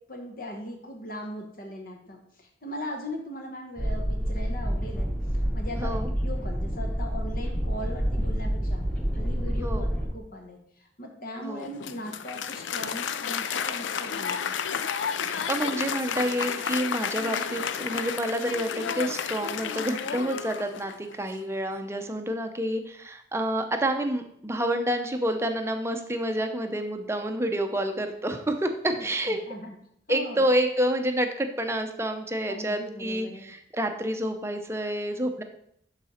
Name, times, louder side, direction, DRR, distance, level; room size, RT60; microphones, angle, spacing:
voice 1, 0.1-8.8 9.1-14.6 28.9-29.8 30.1-30.5 32.5-33.5, equal, 50° left, 2 dB, 1.0 m, -39 dB
sound 1, 3.8-10.1, equal, 10° left, 3.6 m, -28 dB
voice 2, 5.8-6.1 9.6-9.9 11.4-11.7 15.2-29.4 30.1-35.4, right 1 dB, 15° right, 6 dB, 0.6 m, -28 dB
Applause, 11.6-21.2, left 7 dB, 80° left, 0.4 m, -31 dB
11.5 x 4.0 x 4.2 m, 0.73 s
head